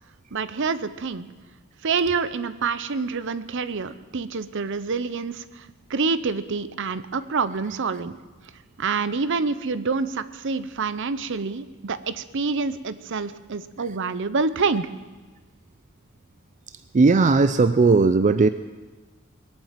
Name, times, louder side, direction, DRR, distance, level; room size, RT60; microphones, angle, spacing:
voice 1, 0.3-1.3 1.8-8.2 8.8-14.9, right 4 dB, 60° right, 14 dB, 0.7 m, -27 dB
voice 2, 16.9-18.5, right 4 dB, 35° right, 12 dB, 0.4 m, -17 dB
21.5 x 8.9 x 7.5 m, 1.3 s
head